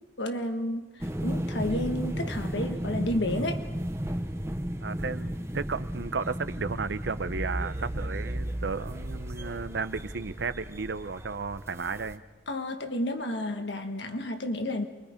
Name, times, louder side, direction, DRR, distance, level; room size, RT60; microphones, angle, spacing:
voice 1, 0.2-3.7 12.5-14.9, left 1 dB, 80° left, 1.5 m, -31 dB
sound 1, 1.0-12.1, right 1 dB, 15° right, 0.8 m, -34 dB
voice 2, 4.8-12.2, right 4 dB, 75° right, 0.7 m, -33 dB
28.0 x 22.5 x 5.1 m
head